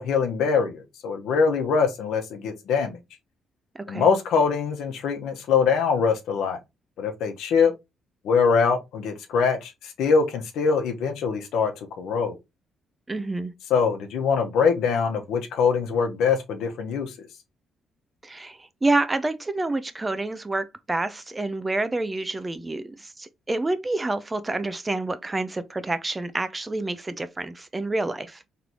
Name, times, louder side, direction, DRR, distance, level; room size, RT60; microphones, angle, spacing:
voice 1, 0.0-3.0 3.9-6.6 7.0-7.7 8.2-11.7 12.0-12.4 13.7-17.1, left 5 dB, 80° left, 1.0 m, -23 dB
voice 2, 3.7-4.1 13.1-13.5 18.2-28.4, right 2 dB, 20° right, 0.6 m, -28 dB
3.8 x 3.3 x 3.0 m
cardioid pair, 90°, 0 cm